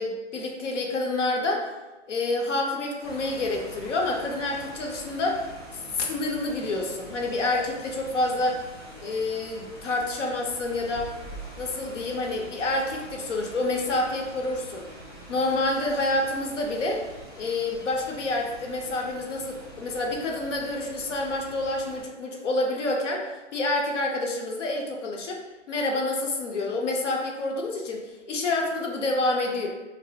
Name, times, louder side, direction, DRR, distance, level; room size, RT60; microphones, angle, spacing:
voice 1, 0.0-1.7 2.1-5.4 5.7-8.6 9.0-11.1 11.6-14.9 15.3-17.1 17.4-25.4 25.7-29.7, left 2 dB, 75° left, 0 dB, 0.6 m, -28 dB
sound 1, 3.0-22.0, right 1 dB, 20° left, 0.5 m, -44 dB
2.3 x 2.0 x 2.7 m, 1.1 s
hypercardioid pair, 160°, 37 cm